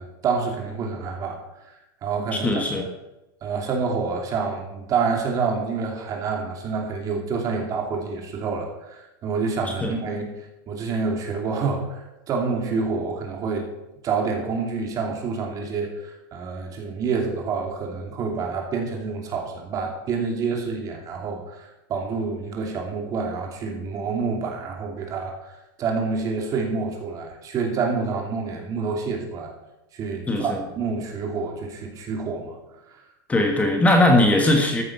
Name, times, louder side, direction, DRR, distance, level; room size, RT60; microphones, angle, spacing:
voice 1, 0.0-1.4 2.0-2.8 3.4-10.3 10.7-12.0 12.3-13.7 14.0-21.4 21.9-25.3 25.8-29.5 29.9-32.6, right 4 dB, 30° right, 2 dB, 2.6 m, -27 dB
voice 2, 2.4-2.9 9.6-9.9 30.3-30.6 33.3-34.8, left 1 dB, 10° left, 3 dB, 1.4 m, -19 dB
13.5 x 8.5 x 5.7 m, 0.92 s
supercardioid pair, 145°, 12 cm